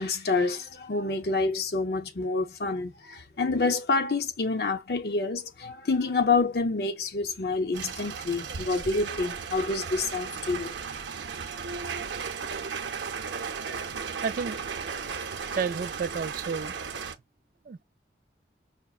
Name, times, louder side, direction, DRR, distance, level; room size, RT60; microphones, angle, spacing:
voice 1, 0.0-10.7, left 3 dB, 60° left, 0.7 m, -28 dB
sound 1, 7.7-17.2, right 6 dB, 85° right, 0.6 m, -35 dB
voice 2, 14.2-14.6 15.5-16.8 17.7-17.8, right 5 dB, 50° right, 0.3 m, -31 dB
5.7 x 2.0 x 2.4 m
head